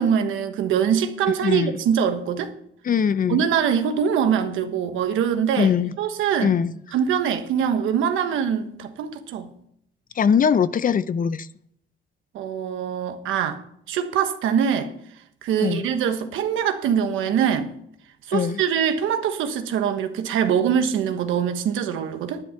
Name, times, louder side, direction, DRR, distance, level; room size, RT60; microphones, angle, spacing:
voice 1, 0.0-2.5 3.3-5.7 6.0-6.6 6.9-9.5 12.3-13.6 13.9-14.9 15.4-17.7 18.3-22.4, right 8 dB, 90° right, 1.4 m, -23 dB
voice 2, 1.4-1.8 2.8-3.4 5.6-6.0 6.4-6.7 10.1-11.5 15.6-15.9 18.3-18.6, left 7 dB, 45° left, 0.6 m, -21 dB
11.0 x 9.6 x 5.8 m
cardioid pair, 90°, 20 cm